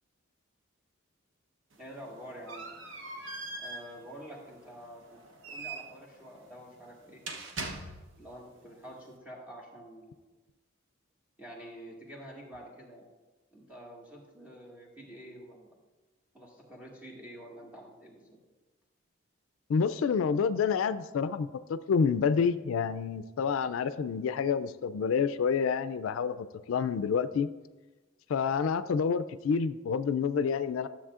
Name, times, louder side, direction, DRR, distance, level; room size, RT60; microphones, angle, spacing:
sound 1, 1.7-8.3, right 3 dB, 70° right, 0.9 m, -43 dB
voice 1, 1.8-2.6 3.6-7.2 8.2-10.2 11.4-13.1 13.5-15.7 16.3-18.4, equal, 5° right, -3 dB, 1.7 m, -48 dB
voice 2, 19.7-27.5 28.3-30.9, left 6 dB, 85° left, 13 dB, 0.3 m, -28 dB
12.5 x 7.3 x 2.4 m, 1.2 s
head